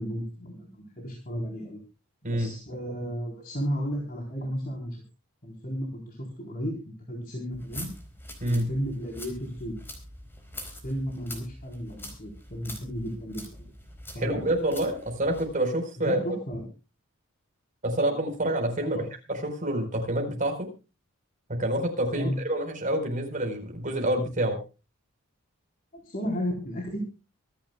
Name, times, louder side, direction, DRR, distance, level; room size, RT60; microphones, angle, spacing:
voice 1, 0.0-1.8 2.2-5.0 5.4-6.7 7.1-7.9 8.5-9.7 10.8-13.7 14.1-14.5 16.0-16.6 18.8-19.1 22.1-22.3 25.9-27.0, equal, 40° left, 0 dB, 4.1 m, -33 dB
sound 1, 7.5-15.5, left 1 dB, 10° left, 4.1 m, -44 dB
voice 2, 14.2-16.2 17.8-19.0 19.4-20.7 21.5-24.6, right 1 dB, 35° right, 4 dB, 4.5 m, -27 dB
25.5 x 11.5 x 2.3 m, 0.32 s
head